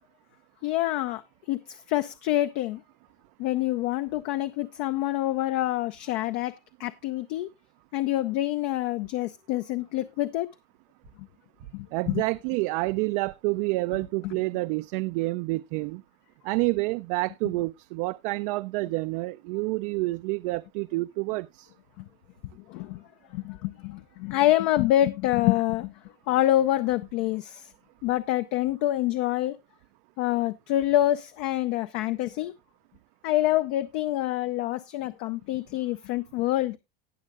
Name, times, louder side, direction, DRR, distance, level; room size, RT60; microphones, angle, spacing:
voice 1, 0.6-1.2 1.5-2.8 3.4-7.5 7.9-10.5 11.2-11.3 11.7-12.2 14.2-14.3 22.0-22.1 22.7-23.0 23.3-25.9 26.3-27.7 28.0-29.6 30.2-32.5 33.2-36.8, left 14 dB, 60° left, 0.6 m, -26 dB
voice 2, 11.9-16.0 16.4-21.7, right 22 dB, 60° right, 0.5 m, -28 dB
18.5 x 6.5 x 2.3 m
supercardioid pair, 135°, 30 cm